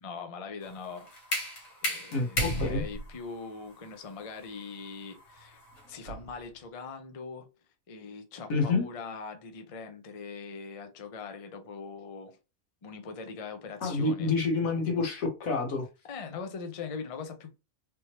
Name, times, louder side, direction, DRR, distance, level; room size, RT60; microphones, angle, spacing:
voice 1, 0.0-1.2 1.6-5.6 5.9-7.5 7.9-12.4 12.8-14.3 16.1-17.6, left 5 dB, 40° left, 0.5 m, -41 dB
sound 1, 0.6-6.4, equal, 65° left, 1.5 m, -35 dB
voice 2, 2.1-2.8 8.5-8.9 13.8-15.9, left 3 dB, 85° left, 1.5 m, -28 dB
3.4 x 2.9 x 2.9 m
omnidirectional pair, 1.4 m